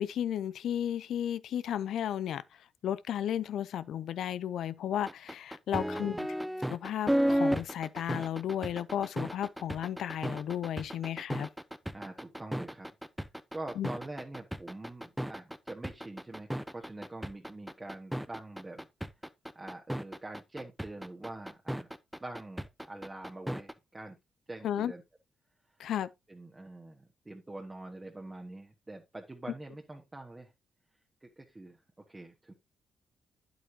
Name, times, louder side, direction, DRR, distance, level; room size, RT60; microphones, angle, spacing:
voice 1, 0.0-2.4 2.8-6.3 6.7-11.5 13.8-13.9 24.6-24.9 25.8-26.1, left 10 dB, 75° left, 0.6 m, -34 dB
sound 1, 5.1-23.7, equal, 5° right, 0.7 m, -34 dB
voice 2, 5.7-6.3 11.9-12.9 13.5-18.9 19.5-21.9 22.2-24.2 24.5-25.0 26.3-30.5 31.2-31.8 32.1-32.5, right 2 dB, 20° right, 1.5 m, -45 dB
9.3 x 8.2 x 2.8 m
cardioid pair, 85°, 0 cm